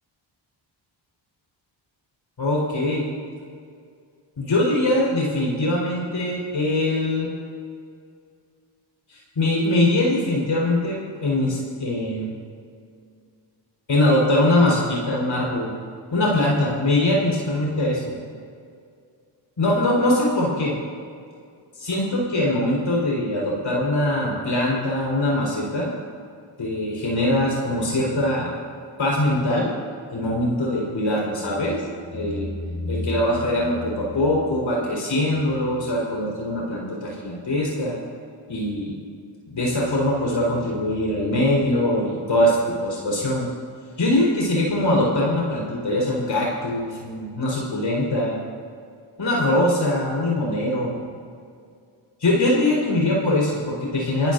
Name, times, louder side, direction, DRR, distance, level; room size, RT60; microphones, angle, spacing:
voice 1, 2.4-3.0 4.4-7.3 9.1-12.3 13.9-15.7 16.1-18.1 19.6-20.7 21.8-25.9 26.6-28.5 29.0-29.7 30.1-31.8 32.1-32.5 32.8-38.0 38.5-38.9 39.5-43.5 44.0-48.4 49.2-51.0 52.2-54.3, left 1 dB, 65° left, -4 dB, 5.0 m, -22 dB
29.0 x 15.5 x 2.8 m, 2.2 s
cardioid pair, 80°, 49 cm